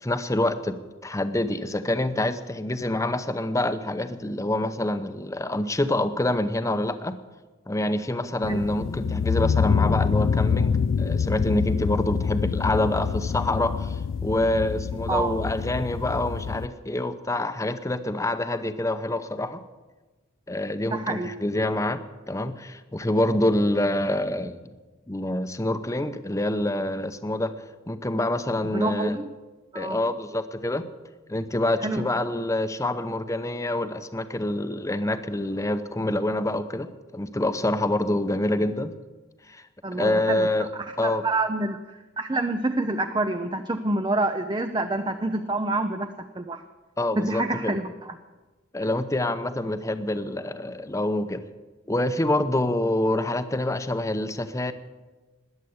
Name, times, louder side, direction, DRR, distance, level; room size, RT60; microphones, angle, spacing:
voice 1, 0.0-7.2 7.7-19.6 20.5-22.0 22.3-24.6 25.1-27.5 27.9-29.2 29.7-30.9 31.3-38.9 39.5-39.6 39.9-40.7 41.0-41.2 47.0-47.8 48.7-51.4 51.9-54.7, left 1 dB, 15° left, 10 dB, 0.8 m, -26 dB
sound 1, 8.4-16.7, left 6 dB, 70° left, 0.4 m, -26 dB
voice 2, 20.8-21.3 28.7-29.3 29.7-30.0 31.8-32.0 39.8-46.6 47.2-48.2, right 2 dB, 20° right, 8 dB, 0.6 m, -27 dB
20.5 x 8.3 x 7.9 m, 1.2 s
head